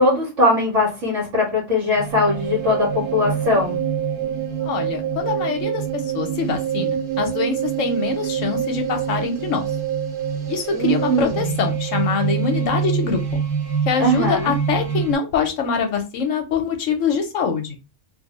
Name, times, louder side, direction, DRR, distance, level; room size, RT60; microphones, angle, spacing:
voice 1, 0.0-3.8 10.7-11.5 14.0-14.5, left 1 dB, 60° right, -5 dB, 1.3 m, -20 dB
sound 1, 2.0-15.2, right 8 dB, 80° right, 1.2 m, -25 dB
voice 2, 4.6-5.8 6.1-9.6 10.5-13.2 13.9-17.8, left 6 dB, 65° left, 5 dB, 0.9 m, -24 dB
2.6 x 2.4 x 2.9 m, 0.26 s
omnidirectional pair, 1.5 m